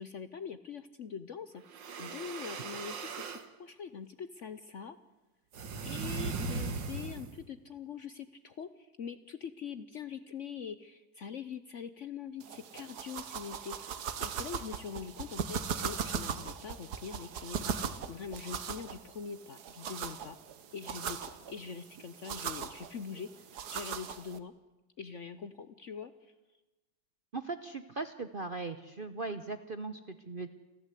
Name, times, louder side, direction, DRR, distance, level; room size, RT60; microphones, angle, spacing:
voice 1, 0.0-5.0 5.8-20.4 20.7-23.3 23.7-24.5 25.0-26.3, left 6 dB, 55° left, 13 dB, 0.9 m, -43 dB
sound 1, 1.6-3.5 5.5-7.4, right 4 dB, 80° right, 2.1 m, -38 dB
sound 2, 12.4-24.4, right 7 dB, 60° right, 1.6 m, -39 dB
voice 2, 27.3-30.5, right 3 dB, 45° right, 10 dB, 0.7 m, -39 dB
29.5 x 12.0 x 8.2 m, 1.1 s
omnidirectional pair, 2.0 m